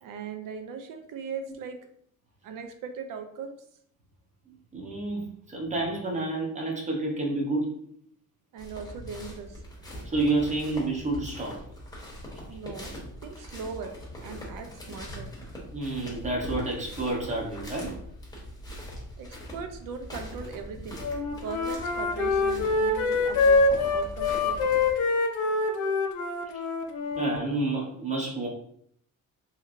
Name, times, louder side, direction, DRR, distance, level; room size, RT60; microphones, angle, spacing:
voice 1, 0.0-1.8 2.4-3.6 8.5-9.6 12.5-13.9 14.2-15.3 19.2-21.0 21.3-24.6, right 5 dB, 70° right, 7 dB, 0.5 m, -39 dB
voice 2, 4.5-7.7 10.1-11.6 15.7-17.9 27.2-28.5, right 2 dB, 20° right, -2 dB, 0.7 m, -29 dB
sound 1, 8.6-24.9, equal, 10° left, 0.8 m, -41 dB
Wind instrument woodwind instrument, 21.0-27.4, left 3 dB, 55° left, 0.5 m, -25 dB
2.8 x 2.8 x 2.5 m, 0.67 s
cardioid pair, 155°, 35 cm